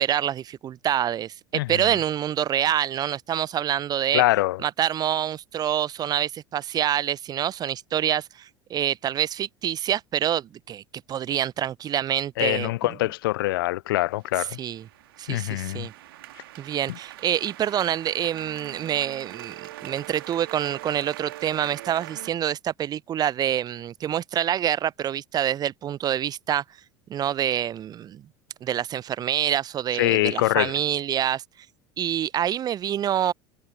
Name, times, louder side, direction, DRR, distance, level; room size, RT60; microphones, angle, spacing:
voice 1, 0.0-4.2 4.6-10.8 11.1-12.7 14.4-14.8 15.2-15.9 16.6-26.6 27.1-28.2 28.6-31.4 32.0-33.3, right 10 dB, 30° right, 0.6 m, -26 dB
voice 2, 1.5-1.9 4.1-4.6 12.4-14.6 15.3-15.9 30.0-30.7, left 18 dB, 60° left, 0.7 m, -24 dB
sound 1, 14.2-22.3, right 15 dB, 65° right, 2.0 m, -42 dB
figure-of-eight pair, 75°, 13 cm